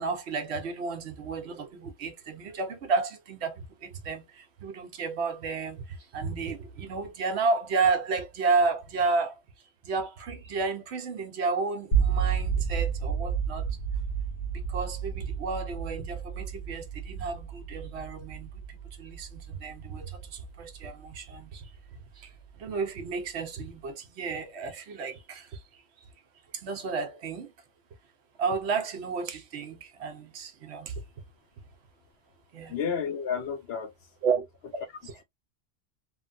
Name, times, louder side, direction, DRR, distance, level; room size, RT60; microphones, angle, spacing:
voice 1, 0.0-9.4 9.8-13.8 14.5-26.1 26.5-27.5 28.4-31.0 32.5-32.7 34.2-34.5 34.7-35.1, right 4 dB, 65° right, 0.9 m, -32 dB
sound 1, 11.9-21.9, right 7 dB, 85° left, 1.3 m, -31 dB
voice 2, 32.7-33.9, left 7 dB, 65° left, 0.7 m, -31 dB
3.1 x 2.1 x 2.4 m
omnidirectional pair, 1.2 m